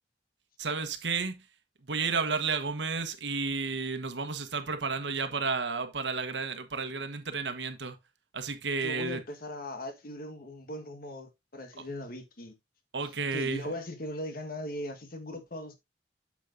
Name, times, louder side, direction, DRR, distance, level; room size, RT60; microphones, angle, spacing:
voice 1, 0.6-1.5 1.8-8.0 8.3-9.2 12.9-13.7, right 4 dB, 85° right, 1.3 m, -32 dB
voice 2, 8.8-12.5 13.3-15.8, left 1 dB, 55° left, 1.6 m, -39 dB
8.4 x 7.4 x 2.7 m
head